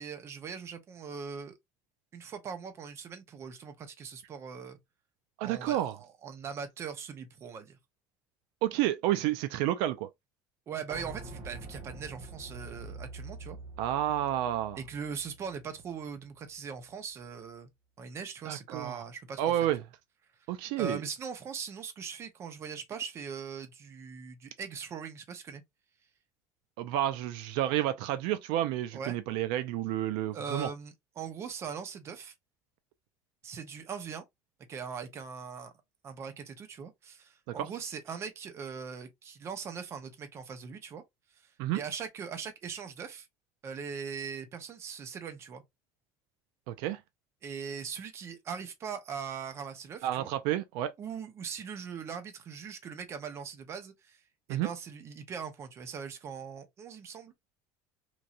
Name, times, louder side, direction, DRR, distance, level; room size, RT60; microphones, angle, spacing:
voice 1, 0.0-1.6 2.1-4.8 5.4-7.8 10.7-13.6 14.8-17.7 18.0-19.5 20.8-25.6 28.9-29.2 30.3-32.3 33.4-34.2 34.7-35.7 36.0-41.0 41.7-43.3 43.6-45.6 47.4-50.3 51.0-54.2 54.5-57.3, right 6 dB, 35° right, 0.6 m, -40 dB
voice 2, 5.4-5.9 8.6-10.1 13.8-14.8 18.5-19.0 19.4-19.8 20.5-21.0 26.8-30.7 37.5-37.7 41.6-41.8 46.7-47.0 50.0-50.9 54.5-54.7, right 13 dB, 80° right, 0.4 m, -30 dB
sound 1, 10.9-16.5 16.8-16.9, right 2 dB, 55° right, 1.1 m, -46 dB
3.0 x 2.6 x 2.4 m
cardioid pair, 145°, 8 cm